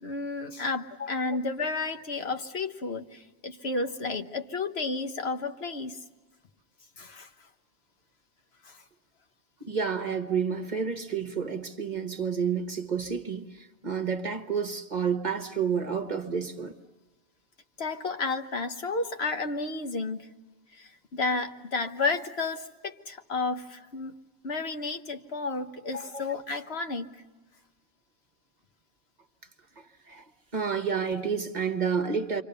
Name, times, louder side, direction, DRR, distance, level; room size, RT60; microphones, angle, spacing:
voice 1, 0.0-6.0 7.0-7.3 8.6-8.8 17.8-20.3 20.7-24.2 24.4-27.1, left 3 dB, 65° left, 1.4 m, -32 dB
voice 2, 9.6-16.8 26.1-26.2 29.8-30.2 30.5-32.4, right 6 dB, 40° right, 1.2 m, -30 dB
28.5 x 24.5 x 6.9 m
omnidirectional pair, 1.2 m